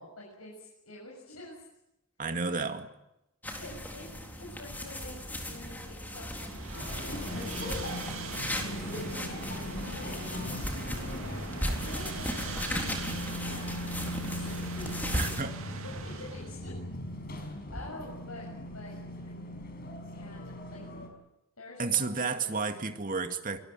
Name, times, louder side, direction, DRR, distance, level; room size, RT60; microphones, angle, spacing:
voice 1, 0.0-1.7 2.6-2.7 3.6-8.9 9.5-10.6 10.8-15.4 15.8-16.7 17.7-18.5 18.7-19.0 20.0-20.8 21.6-22.6, left 2 dB, 85° left, -2 dB, 7.0 m, -48 dB
voice 2, 2.2-2.9 15.1-15.6 21.8-23.6, right 5 dB, 40° right, 7 dB, 2.3 m, -31 dB
sound 1, 3.4-15.4, left 1 dB, 10° left, 4.0 m, -37 dB
sound 2, 6.4-16.5, right 5 dB, 70° right, 2.7 m, -43 dB
sound 3, 6.7-21.1, left 1 dB, 45° left, 5.5 m, -39 dB
24.5 x 22.0 x 9.1 m, 0.89 s
head